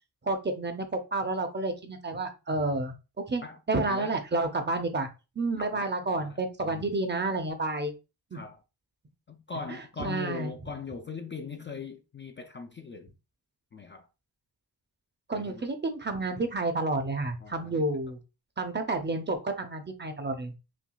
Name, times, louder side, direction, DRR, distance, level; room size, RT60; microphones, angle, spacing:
voice 1, 0.2-2.9 3.3-5.1 5.4-7.9 8.3-8.4 10.0-10.5 15.3-18.2 18.6-20.5, right 2 dB, 25° right, 0.6 m, -30 dB
voice 2, 3.4-4.2 5.6-7.0 8.3-8.6 9.3-13.1 13.7-14.1 15.3-15.7 16.3-16.4 17.4-17.8, left 4 dB, 30° left, 0.4 m, -41 dB
5.9 x 2.3 x 2.3 m
wide cardioid pair, 130°, 39 cm